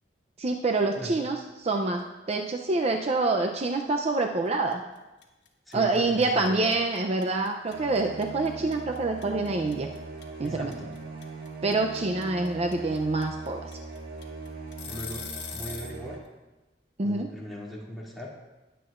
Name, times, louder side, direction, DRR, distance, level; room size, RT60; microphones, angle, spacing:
voice 1, 0.4-2.0 2.3-4.8 5.7-9.9 10.4-10.7 11.6-13.7 17.0-17.3, right 3 dB, 35° right, 3 dB, 0.5 m, -26 dB
sound 1, 4.7-5.0 5.2-16.0, left 6 dB, 70° left, 1.6 m, -41 dB
voice 2, 5.7-6.7 10.4-10.9 14.8-15.2 15.5-16.2 17.0-18.3, equal, ahead, -6 dB, 2.5 m, -39 dB
sound 2, 7.6-16.2, right 3 dB, 60° right, 1.6 m, -40 dB
20.0 x 8.0 x 2.5 m, 1.1 s
head